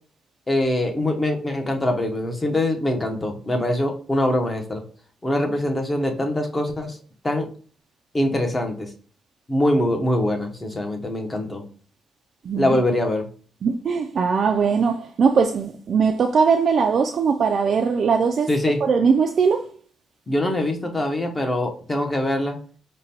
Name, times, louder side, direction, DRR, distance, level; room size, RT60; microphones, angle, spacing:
voice 1, 0.5-4.8 5.2-7.0 7.2-7.5 8.1-8.9 9.5-11.6 12.6-13.2 18.5-18.8 20.3-22.6, left 1 dB, 20° left, 0.8 m, -23 dB
voice 2, 12.4-12.8 13.6-18.5 18.8-19.7, right 5 dB, 55° right, 0.3 m, -20 dB
4.9 x 2.2 x 2.8 m
cardioid pair, 90°, 0 cm